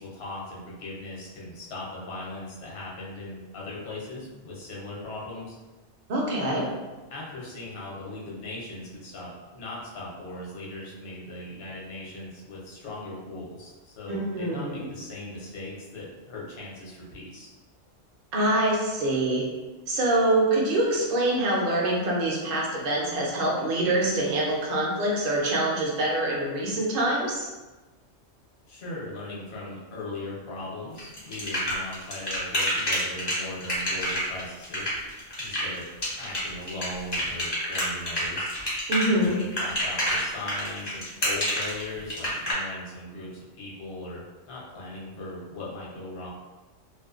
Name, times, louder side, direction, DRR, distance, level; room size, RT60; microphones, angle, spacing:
voice 1, 0.0-5.6 6.4-6.7 7.1-17.5 28.7-34.9 35.4-35.8 36.2-38.5 39.2-46.3, left 2 dB, 60° left, -5 dB, 0.9 m, -39 dB
voice 2, 6.1-6.6 14.1-14.9 18.3-19.4 19.9-27.5 38.9-39.3, right 1 dB, 55° right, -3 dB, 0.7 m, -25 dB
sound 1, 31.0-42.5, equal, 25° left, 0.6 m, -28 dB
2.5 x 2.1 x 2.3 m, 1.2 s
omnidirectional pair, 1.3 m